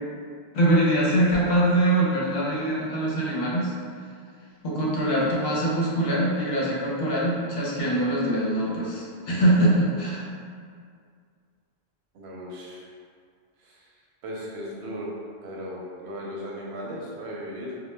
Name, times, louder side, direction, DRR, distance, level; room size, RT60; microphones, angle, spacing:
voice 1, 0.5-3.7 4.6-10.3, right 1 dB, 65° left, -5 dB, 0.7 m, -23 dB
voice 2, 12.1-12.9 13.6-13.9 14.2-15.1 15.4-17.8, equal, 80° right, -4 dB, 0.8 m, -36 dB
2.1 x 2.1 x 3.0 m, 2.2 s
omnidirectional pair, 1.1 m